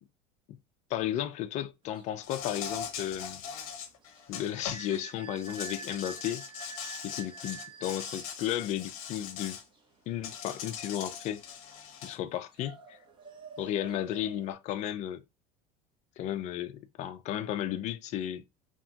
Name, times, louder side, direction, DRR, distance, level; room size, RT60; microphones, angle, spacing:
voice 1, 0.9-3.4 4.3-6.4 7.0-9.6 10.1-11.4 12.0-13.0 13.6-15.2 16.2-18.4, left 11 dB, 40° left, 0.4 m, -34 dB
sound 1, 1.9-14.5, right 6 dB, 25° right, 0.8 m, -49 dB
Insect, 2.2-5.0 5.4-9.6 10.2-12.2, left 7 dB, 75° left, 0.6 m, -41 dB
2.8 x 2.2 x 2.7 m
supercardioid pair, 120°, 18 cm